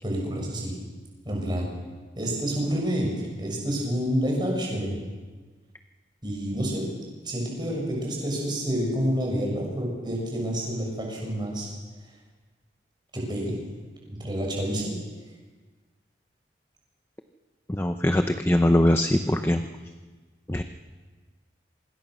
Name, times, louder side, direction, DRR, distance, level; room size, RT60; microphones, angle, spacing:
voice 1, 0.0-0.7 1.2-1.7 2.2-5.0 6.2-6.8 7.2-11.7 13.1-13.6 14.1-14.9, equal, 25° right, -1 dB, 6.8 m, -28 dB
voice 2, 17.7-19.6 20.5-20.6, left 1 dB, 15° left, 7 dB, 0.8 m, -22 dB
26.0 x 20.5 x 6.3 m, 1.4 s
head